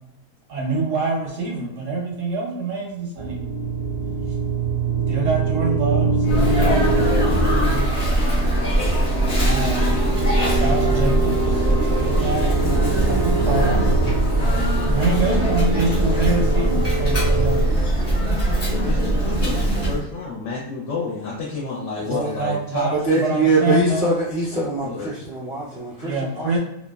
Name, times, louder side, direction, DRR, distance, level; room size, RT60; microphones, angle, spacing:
voice 1, 0.5-3.4 5.1-8.1 9.4-10.0 10.4-12.5 13.0-13.8 14.8-17.7 22.1-24.0 26.0-26.6, right 3 dB, 65° right, -2 dB, 0.8 m, -26 dB
sound 1, 3.2-17.6, right 3 dB, 40° right, 0.3 m, -24 dB
Sneeze, 6.2-20.0, right 1 dB, 45° left, 0.5 m, -21 dB
voice 2, 18.7-22.9 23.3-23.5 24.8-25.1, left 4 dB, 65° left, -5 dB, 0.9 m, -30 dB
voice 3, 22.0-22.4 22.9-26.6, right 2 dB, 25° left, -7 dB, 0.9 m, -23 dB
2.6 x 2.1 x 2.2 m, 0.85 s
omnidirectional pair, 1.7 m